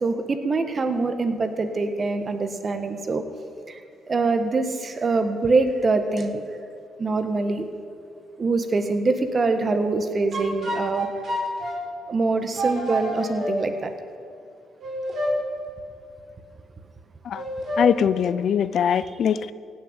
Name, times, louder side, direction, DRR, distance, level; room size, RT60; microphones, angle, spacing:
voice 1, 0.0-3.2 3.7-3.8 4.1-6.4 7.0-7.7 8.4-11.1 12.1-13.9, right 3 dB, 35° right, 8 dB, 1.4 m, -24 dB
sound 1, 10.3-11.8 12.5-13.5 14.8-15.3 17.3-17.9, equal, 50° right, 4.3 m, -28 dB
voice 2, 17.8-19.5, left 8 dB, 65° left, 16 dB, 0.4 m, -22 dB
16.5 x 6.6 x 9.0 m, 2.3 s
cardioid pair, 90°, 0 cm